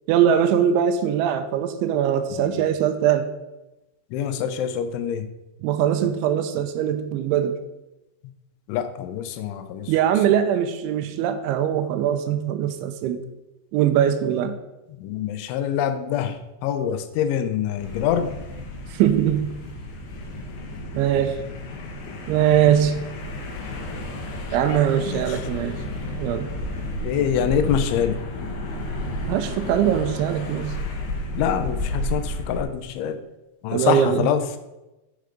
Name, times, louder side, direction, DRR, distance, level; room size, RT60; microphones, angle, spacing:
voice 1, 0.1-3.3 5.6-7.6 9.9-13.2 13.7-14.6 18.9-19.5 20.9-21.4 22.3-23.0 24.5-25.8 26.2-26.5 29.2-30.8 33.7-34.3, right 9 dB, 85° right, 9 dB, 3.0 m, -21 dB
voice 2, 4.1-5.2 8.7-9.9 15.0-18.3 24.7-24.8 25.1-25.4 27.0-28.2 31.4-33.2 33.6-34.6, left 9 dB, 90° left, 10 dB, 3.2 m, -25 dB
sound 1, 17.8-32.6, left 1 dB, 70° left, 3.2 m, -32 dB
8.0 x 6.6 x 5.0 m, 1.0 s
omnidirectional pair, 5.3 m